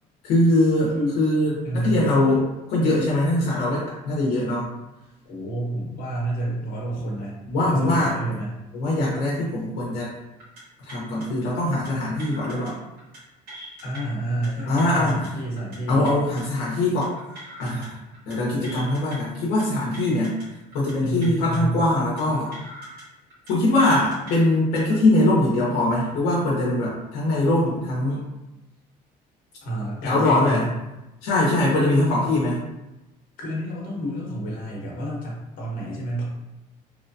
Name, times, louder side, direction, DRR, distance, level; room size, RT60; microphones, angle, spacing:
voice 1, 0.2-4.6 7.5-8.1 8.7-10.1 10.9-12.8 14.7-15.4 15.9-17.1 17.6-18.0 18.3-20.3 20.7-22.5 23.5-28.2 30.0-30.6 31.2-32.6, left 1 dB, 85° left, -6 dB, 0.8 m, -22 dB
voice 2, 1.6-2.0 5.3-8.5 13.8-16.1 21.0-21.8 29.6-30.7 31.7-32.0 33.4-36.2, right 1 dB, 60° left, -3 dB, 1.0 m, -29 dB
sound 1, 10.4-10.6 10.9-11.3 11.9-12.7 13.0-13.2 13.5-14.0 14.4-15.3 15.6-15.8 16.0-16.4 17.0-17.9 18.1-18.4 18.6-19.2 19.6-20.5 20.7-20.9 21.2-21.6 22.2-23.0 23.3-23.5 23.8-24.3 24.8-25.0, right 1 dB, 75° right, 1.3 m, -42 dB
3.0 x 2.1 x 2.6 m, 0.99 s
cardioid pair, 140°, 16 cm